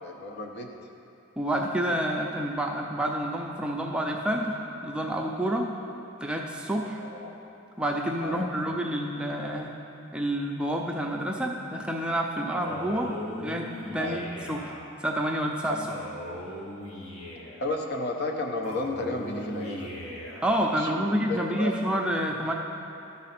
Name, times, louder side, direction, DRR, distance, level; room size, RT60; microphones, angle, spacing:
voice 1, 0.0-0.7 7.0-7.4 8.2-8.5 14.0-14.3 15.7-16.0 17.6-19.9 20.7-21.7, left 2 dB, 50° left, 1 dB, 0.8 m, -33 dB
voice 2, 1.4-4.6 4.8-5.7 6.2-7.0 7.8-9.7 10.1-13.1 13.4-13.7 13.9-14.8 15.0-15.8 20.4-22.5, right 1 dB, 5° right, 0 dB, 0.4 m, -28 dB
Male speech man speaking, 12.6-14.8 15.9-17.7 18.6-20.6, left 1 dB, 65° left, 1.3 m, -38 dB
12.5 x 4.2 x 5.7 m, 2.8 s
head